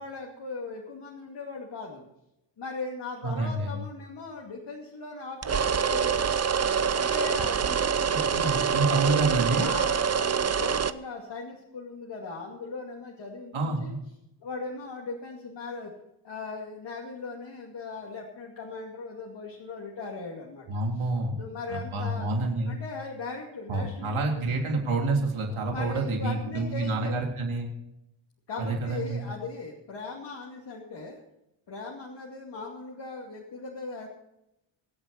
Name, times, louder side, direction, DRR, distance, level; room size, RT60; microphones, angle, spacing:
voice 1, 0.0-2.1 2.6-6.4 6.9-8.7 9.5-13.9 14.4-15.9 16.2-21.0 21.4-22.3 22.7-24.5 25.5-27.2 28.5-31.2 31.7-34.1, left 3 dB, 55° left, -2 dB, 2.5 m, -39 dB
voice 2, 3.2-3.8 8.3-9.7 13.5-14.0 20.7-21.4 21.7-22.8 23.7-27.7 28.6-29.3, right 2 dB, 80° right, 1 dB, 3.5 m, -28 dB
sound 1, 5.4-10.9, right 7 dB, 35° right, 0.6 m, -25 dB
24.0 x 8.9 x 4.3 m, 0.85 s
wide cardioid pair, 140°, 48 cm